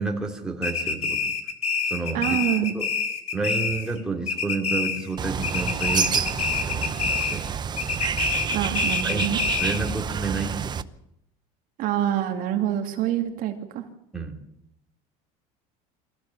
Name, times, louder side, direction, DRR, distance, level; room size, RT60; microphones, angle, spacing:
voice 1, 0.0-1.3 1.9-2.4 2.7-2.9 3.3-7.4 9.0-9.3 9.6-10.8 14.1-14.4, right 3 dB, 5° right, 0 dB, 3.4 m, -30 dB
sound 1, 0.6-4.0 4.3-5.2 5.4-7.5 7.8-9.9, left 5 dB, 40° left, 3.0 m, -27 dB
voice 2, 2.1-2.7 8.5-9.4 11.8-13.8, right 11 dB, 55° right, 4 dB, 2.4 m, -26 dB
Bird, 5.2-10.8, right 7 dB, 25° right, 0.8 m, -28 dB
23.5 x 15.0 x 7.4 m, 0.76 s
cardioid pair, 135°, 17 cm